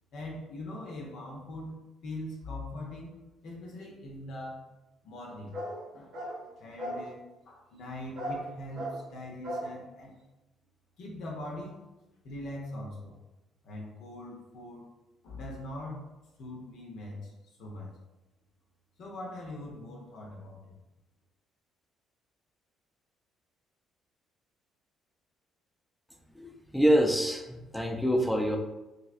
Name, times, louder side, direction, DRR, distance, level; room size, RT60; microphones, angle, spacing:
voice 1, 0.1-1.7 2.0-3.2 3.4-4.7 5.0-5.5 5.9-6.1 6.6-7.2 7.4-10.1 11.0-13.2 13.6-14.9 15.2-16.1 16.4-17.3 17.6-17.9 19.0-20.7, left 1 dB, 60° left, -2 dB, 0.6 m, -41 dB
sound 1, 5.5-5.8 6.1-6.4 6.8-7.1 8.2-8.4 8.8-9.0 9.4-9.7, equal, 55° right, 0.7 m, -36 dB
voice 2, 26.3-28.6, equal, ahead, 2 dB, 0.4 m, -26 dB
3.0 x 2.7 x 2.4 m, 1.0 s
figure-of-eight pair, 45°, 0 cm